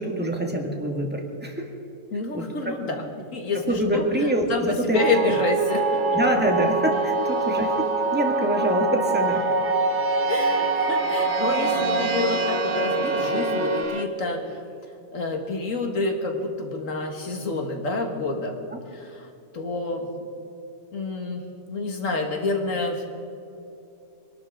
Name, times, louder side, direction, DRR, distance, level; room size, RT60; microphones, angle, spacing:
voice 1, 0.0-1.7 2.3-2.7 3.7-5.0 5.3-5.4 6.1-7.9 8.1-9.4 10.4-10.6 18.7-18.8, right 1 dB, 5° right, 1 dB, 2.0 m, -25 dB
voice 2, 2.1-3.0 3.3-4.0 4.5-5.8 10.3-14.6 15.1-18.6 18.9-19.3 19.5-20.1 20.9-21.4 21.7-23.1, left 3 dB, 80° left, 3 dB, 2.1 m, -28 dB
sound 1, 4.9-13.8, right 3 dB, 60° right, 1.3 m, -24 dB
sound 2, 5.7-8.4 9.2-14.0, right 3 dB, 30° right, 0.6 m, -34 dB
24.5 x 12.0 x 3.8 m, 2.7 s
omnidirectional pair, 1.4 m